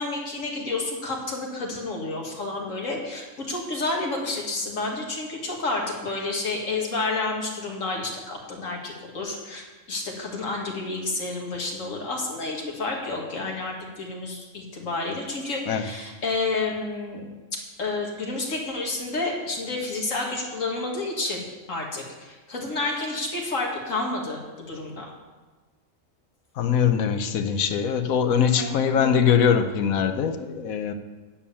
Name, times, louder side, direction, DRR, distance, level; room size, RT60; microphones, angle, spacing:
voice 1, 0.0-17.3 17.5-25.1 28.4-28.8, left 3 dB, 65° left, 0 dB, 2.3 m, -30 dB
voice 2, 26.6-30.9, left 7 dB, 85° left, 8 dB, 1.2 m, -22 dB
9.6 x 7.2 x 7.0 m, 1.3 s
omnidirectional pair, 1.4 m